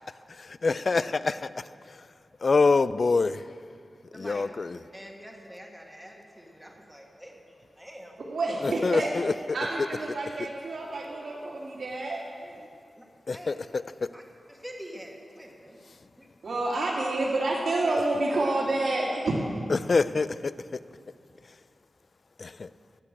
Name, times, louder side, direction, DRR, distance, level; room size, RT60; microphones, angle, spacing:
voice 1, 0.3-1.5 1.9-2.0 2.4-3.5 4.1-4.8 8.6-9.9 13.3-14.1 19.7-20.8 22.4-22.7, left 4 dB, 50° left, 15 dB, 0.3 m, -26 dB
voice 2, 4.1-4.4 4.9-8.2 9.0-9.1 10.0-10.1 10.9-11.0 13.0-13.1 13.3-13.5 14.1-14.2 14.5-15.8 16.2-16.3, equal, ahead, 0 dB, 1.7 m, -46 dB
voice 3, 8.3-9.1 9.5-12.5 16.4-19.2, right 2 dB, 85° right, -7 dB, 2.2 m, -29 dB
12.5 x 8.3 x 8.6 m, 2.4 s
wide cardioid pair, 145°, 0 cm